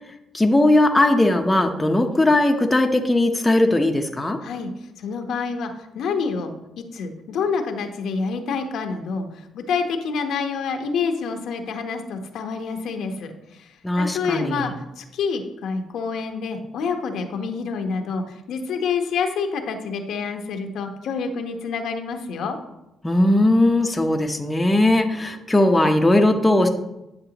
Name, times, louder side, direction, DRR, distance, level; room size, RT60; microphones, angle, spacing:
voice 1, 0.1-4.4 13.8-14.7 23.0-26.7, left 1 dB, 15° left, 3 dB, 0.8 m, -19 dB
voice 2, 5.0-6.5 6.9-22.6, left 5 dB, 75° left, 4 dB, 1.0 m, -27 dB
9.8 x 6.7 x 2.9 m, 0.91 s
cardioid pair, 90°, 0 cm